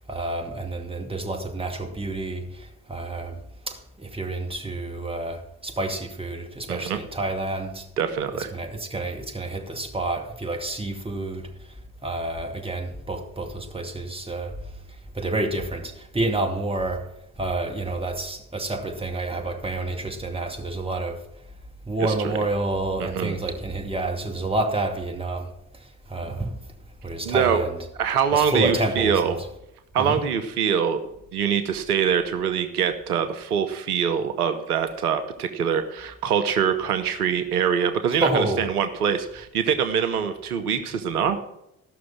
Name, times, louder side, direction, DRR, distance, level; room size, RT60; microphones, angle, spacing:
voice 1, 0.1-3.4 3.7-7.8 8.4-11.5 12.0-14.6 15.1-17.1 17.4-21.2 21.9-25.5 26.1-26.5 27.0-27.8 28.3-29.2 30.0-30.2 38.1-38.7, right 2 dB, 10° right, 2.3 m, -28 dB
voice 2, 6.7-7.0 8.0-8.5 22.0-22.4 23.0-23.4 27.2-27.6 28.0-29.4 29.9-31.0 31.3-41.4, right 7 dB, 90° right, 0.8 m, -24 dB
15.0 x 6.1 x 6.0 m
hypercardioid pair, 50°, 44 cm